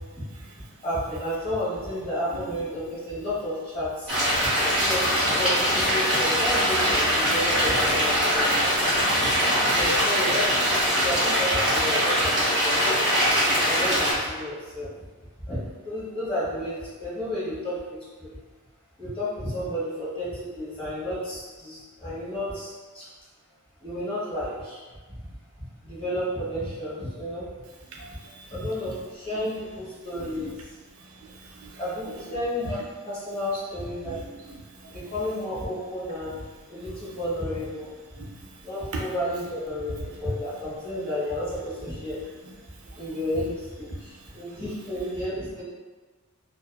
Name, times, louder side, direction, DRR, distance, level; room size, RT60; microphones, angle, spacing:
voice 1, 0.8-4.1 4.8-8.7 9.7-12.3 12.6-12.8 13.6-14.9 15.4-18.3 19.0-23.1 23.8-24.8 25.1-25.2 25.8-27.5 28.5-30.5 31.8-32.8 33.0-34.2 34.9-36.4 36.7-37.9 38.6-42.2 43.0-45.6, left 1 dB, 25° left, -10 dB, 1.1 m, -31 dB
sound 1, 4.1-14.1, equal, 5° right, 1.0 m, -22 dB
voice 2, 27.9-28.5 30.2-30.5 31.2-31.8 34.0-35.0 38.1-38.4, right 2 dB, 65° right, -1 dB, 0.4 m, -44 dB
2.6 x 2.3 x 2.2 m, 1.3 s
head